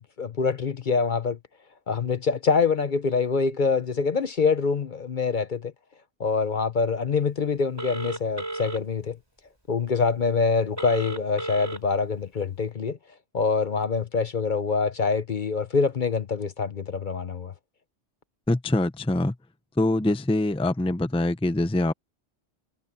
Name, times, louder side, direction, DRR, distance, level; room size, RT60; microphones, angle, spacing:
voice 1, 0.0-1.4 1.9-5.7 6.2-9.2 9.7-13.0 13.3-17.5, left 5 dB, 45° left, 1.0 m, -25 dB
Telephone, 7.8-8.8 10.8-11.8, right 1 dB, 20° right, 5.4 m, -33 dB
voice 2, 18.5-19.3 19.8-21.9, left 1 dB, 5° left, 0.7 m, -24 dB
omnidirectional pair, 1.2 m